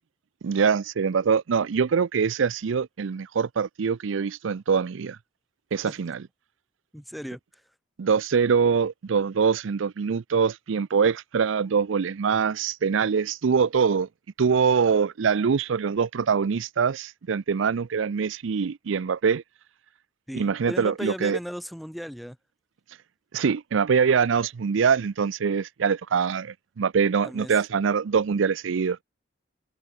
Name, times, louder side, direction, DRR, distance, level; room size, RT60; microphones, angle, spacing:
voice 1, 0.4-5.2 5.7-6.2 8.0-14.1 14.4-19.4 20.3-21.4 23.3-29.0, right 6 dB, 80° right, 0.5 m, -24 dB
voice 2, 6.9-7.4 20.3-22.4 27.2-27.5, equal, ahead, 1.0 m, -36 dB
head